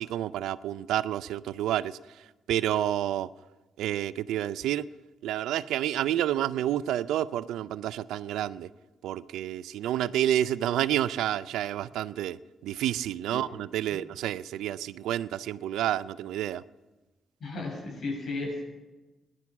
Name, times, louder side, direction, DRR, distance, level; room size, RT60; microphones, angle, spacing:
voice 1, 0.0-1.9 2.5-3.3 3.8-4.9 5.2-8.7 9.0-12.4 12.6-16.6, right 12 dB, 80° right, 0.4 m, -29 dB
voice 2, 17.4-18.6, left 2 dB, 60° left, 7.1 m, -34 dB
15.0 x 11.0 x 7.3 m
supercardioid pair, 55°, 0 cm